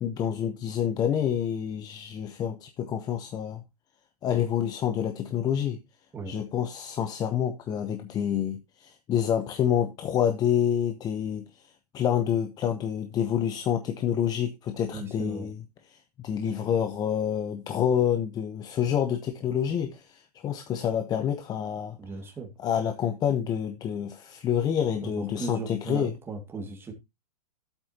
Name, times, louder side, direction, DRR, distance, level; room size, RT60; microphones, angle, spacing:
voice 1, 0.0-3.6 4.2-5.8 6.3-11.6 11.9-15.6 15.9-22.0 22.6-26.1, left 9 dB, 20° left, 0.8 m, -28 dB
voice 2, 14.9-15.5 22.0-22.5 25.0-26.9, right 3 dB, 10° right, 2.0 m, -37 dB
11.5 x 8.1 x 2.8 m
hypercardioid pair, 140°, 20 cm